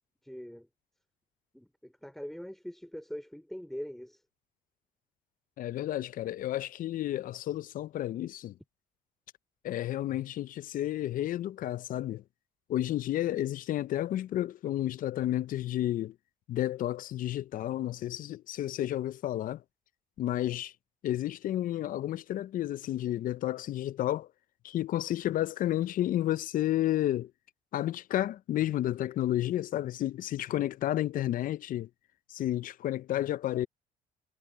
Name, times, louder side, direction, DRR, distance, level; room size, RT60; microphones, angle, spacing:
voice 1, 0.2-0.7 1.5-4.2, equal, ahead, 3.7 m, -42 dB
voice 2, 5.6-8.5 9.6-12.2 12.7-16.1 16.5-19.6 20.2-20.7 21.0-24.3 24.6-27.3 27.7-31.9 32.3-33.7, left 13 dB, 55° left, 0.5 m, -31 dB
cardioid pair, 110°, 17 cm